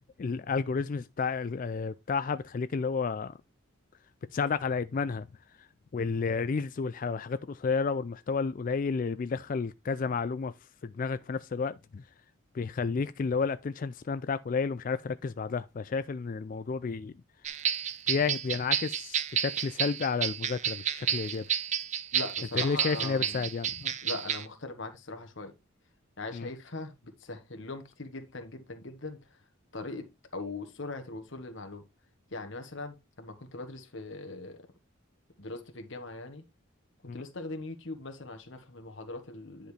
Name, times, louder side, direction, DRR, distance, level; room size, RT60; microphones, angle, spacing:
voice 1, 0.2-3.3 4.3-5.3 5.9-10.5 10.8-12.0 12.5-17.1 18.1-21.5 22.5-23.9 26.3-26.5 37.1-37.2, left 5 dB, 40° left, 0.3 m, -31 dB
sound 1, 17.4-24.5, right 9 dB, 35° right, 0.6 m, -31 dB
voice 2, 22.1-23.5 24.0-25.5 26.2-29.4 29.7-30.0 30.3-31.9 32.3-34.6 35.4-36.4 37.1-39.7, left 3 dB, 60° left, 1.3 m, -40 dB
10.5 x 5.1 x 3.2 m
head